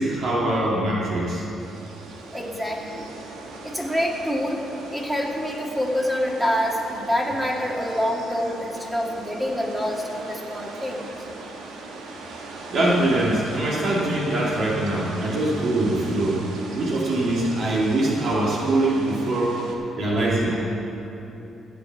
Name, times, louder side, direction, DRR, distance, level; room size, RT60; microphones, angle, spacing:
voice 1, 0.0-1.4 12.7-16.4 16.7-19.6 20.0-20.6, right 1 dB, 65° right, -5 dB, 2.4 m, -23 dB
sound 1, 1.6-19.7, right 3 dB, 90° right, 1.6 m, -39 dB
voice 2, 2.3-3.1 3.6-4.6 4.9-11.1, equal, 5° right, -1 dB, 2.0 m, -26 dB
14.5 x 8.4 x 7.1 m, 2.9 s
cardioid pair, 90°, 0 cm